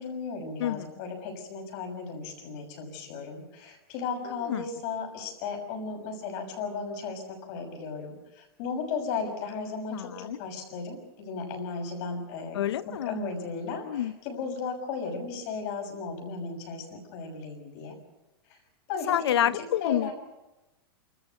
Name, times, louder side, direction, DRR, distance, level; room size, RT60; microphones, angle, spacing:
voice 1, 0.0-12.6 13.0-17.9 18.9-19.1 19.5-20.1, left 4 dB, 35° left, 2 dB, 6.2 m, -35 dB
voice 2, 9.9-10.4 12.5-13.2 13.7-14.1 19.1-20.1, left 11 dB, 80° left, 17 dB, 0.9 m, -28 dB
29.5 x 14.0 x 9.5 m, 1.0 s
supercardioid pair, 175°, 13 cm